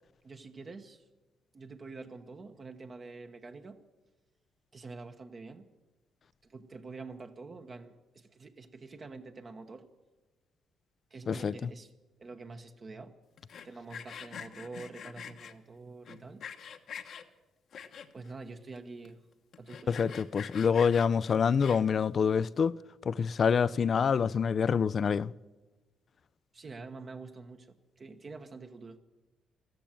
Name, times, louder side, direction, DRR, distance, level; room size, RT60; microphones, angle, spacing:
voice 1, 0.2-1.0 1.5-3.8 4.7-5.6 6.4-9.9 11.1-11.9 12.2-13.1 13.6-16.4 18.1-19.2 19.6-20.2 26.5-29.0, right 3 dB, 40° right, 1.1 m, -46 dB
Sawing, 13.4-15.5 16.1-17.2 17.7-18.3 18.8-18.9 19.0-19.1 19.5-22.0, left 7 dB, 65° left, 1.1 m, -45 dB
voice 2, 19.9-22.7 23.1-25.3, left 6 dB, 50° left, 0.4 m, -26 dB
14.0 x 13.5 x 7.5 m
cardioid pair, 90°, 0 cm